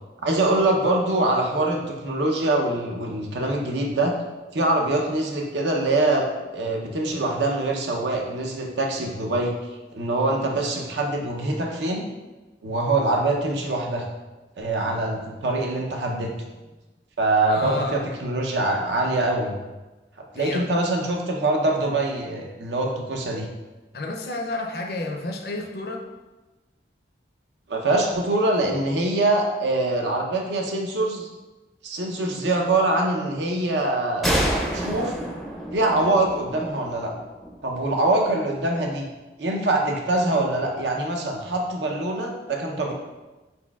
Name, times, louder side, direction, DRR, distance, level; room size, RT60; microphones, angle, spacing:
voice 1, 0.2-4.1 4.5-6.3 6.5-9.5 9.9-12.1 12.6-14.1 14.6-16.3 17.2-19.6 20.3-23.5 27.7-31.3 31.8-34.3 34.7-35.1 35.7-37.1 37.6-39.0 39.4-42.9, right 2 dB, 85° right, 1 dB, 0.7 m, -24 dB
voice 2, 17.5-18.0 20.3-20.7 23.9-26.1 37.3-37.4, left 2 dB, 60° left, 3 dB, 0.5 m, -30 dB
sound 1, 34.2-37.8, equal, ahead, 0.4 m, -28 dB
4.3 x 4.2 x 2.3 m, 1.1 s
head